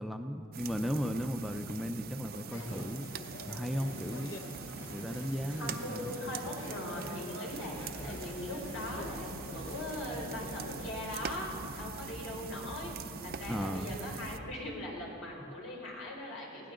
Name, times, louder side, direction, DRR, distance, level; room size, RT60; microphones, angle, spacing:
voice 1, 0.0-3.1 3.5-4.4 4.9-6.1 13.5-14.0, equal, ahead, 5 dB, 0.5 m, -35 dB
sound 1, 0.5-14.4, right 5 dB, 50° right, 0.6 m, -43 dB
sound 2, 2.5-10.9, left 2 dB, 70° left, 1.0 m, -46 dB
voice 2, 5.5-12.9 13.2-16.7, left 1 dB, 90° left, -2 dB, 4.2 m, -40 dB
sound 3, 7.4-14.7, equal, 50° left, 1.2 m, -48 dB
21.0 x 16.5 x 3.8 m, 2.7 s
head